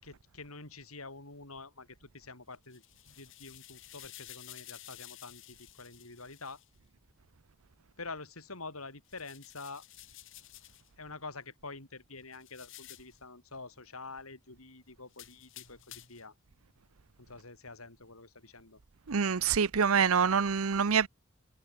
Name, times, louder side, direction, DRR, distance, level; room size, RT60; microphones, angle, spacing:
voice 1, 0.0-6.6 8.0-9.8 11.0-16.3 17.2-18.8, left 3 dB, 80° left, 6.8 m, -47 dB
sound 1, 2.5-6.7 9.1-10.9 12.3-13.2 15.1-16.3, left 14 dB, 65° left, 3.8 m, -52 dB
voice 2, 19.1-21.1, right 6 dB, 75° right, 0.7 m, -26 dB
head